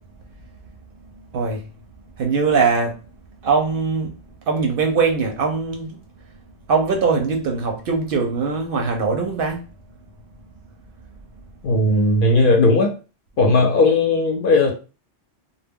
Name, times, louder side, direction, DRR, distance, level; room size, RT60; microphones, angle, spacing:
voice 1, 1.1-1.7 2.2-3.0 3.4-4.1 4.4-6.0 6.7-9.7, right 4 dB, 60° right, 0.7 m, -21 dB
voice 2, 11.6-12.9 13.4-14.7, left 2 dB, 60° left, 0.7 m, -16 dB
2.2 x 2.0 x 3.4 m
omnidirectional pair, 1.1 m